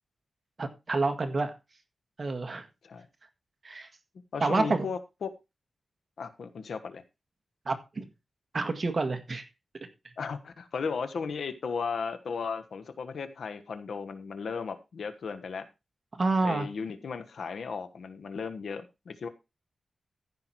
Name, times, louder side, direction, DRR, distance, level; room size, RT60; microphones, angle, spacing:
voice 1, 0.6-1.5 2.2-2.7 3.6-3.9 4.4-4.9 7.7-8.0 8.5-9.5 16.1-16.7, right 3 dB, 45° right, 7 dB, 1.7 m, -28 dB
voice 2, 4.3-5.3 6.2-7.0 10.2-15.7 16.4-19.3, left 5 dB, 85° left, 10 dB, 1.3 m, -35 dB
14.5 x 5.9 x 4.6 m, 0.26 s
wide cardioid pair, 85°, 0 cm